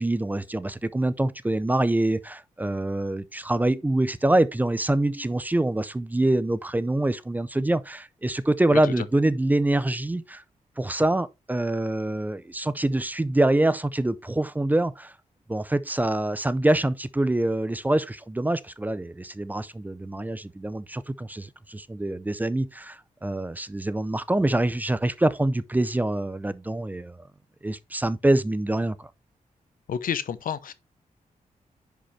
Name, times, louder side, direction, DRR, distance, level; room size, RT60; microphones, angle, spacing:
voice 1, 0.0-10.4 10.8-15.1 15.5-27.2 27.6-29.1, right 1 dB, 10° right, 0.5 m, -25 dB
voice 2, 29.9-30.7, left 8 dB, 90° left, 0.9 m, -29 dB
10.0 x 5.2 x 3.2 m
wide cardioid pair, 150°, 14 cm